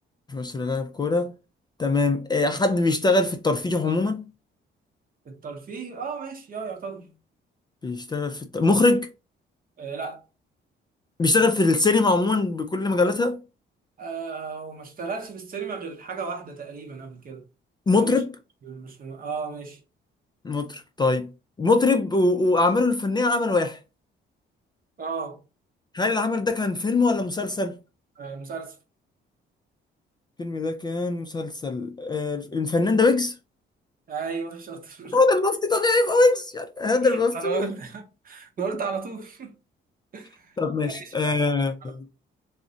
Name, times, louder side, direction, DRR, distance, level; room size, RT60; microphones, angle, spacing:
voice 1, 0.3-1.3 1.8-4.2 7.8-9.1 11.2-13.4 17.9-18.3 20.4-21.3 21.6-23.8 25.9-27.7 30.4-33.3 35.1-37.6 40.6-42.1, left 3 dB, 20° left, 0.3 m, -22 dB
voice 2, 5.3-7.1 9.8-10.2 14.0-17.4 17.9-18.2 18.6-19.8 25.0-25.4 28.2-28.8 34.1-35.2 37.0-39.5 40.1-40.6 40.8-42.1, right 5 dB, 45° right, 0.7 m, -34 dB
2.5 x 2.1 x 3.7 m
cardioid pair, 90°, 20 cm